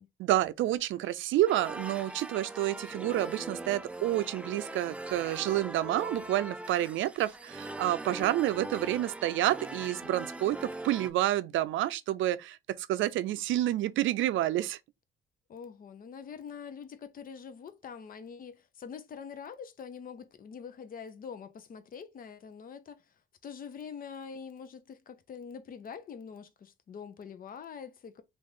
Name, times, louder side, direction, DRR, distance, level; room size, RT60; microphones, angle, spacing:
voice 1, 0.2-14.8, right 14 dB, 75° right, 0.4 m, -29 dB
sound 1, 1.5-11.1, right 2 dB, 5° right, 0.4 m, -41 dB
voice 2, 15.5-28.2, left 6 dB, 45° left, 0.6 m, -45 dB
3.1 x 2.5 x 3.6 m
cardioid pair, 90°, 20 cm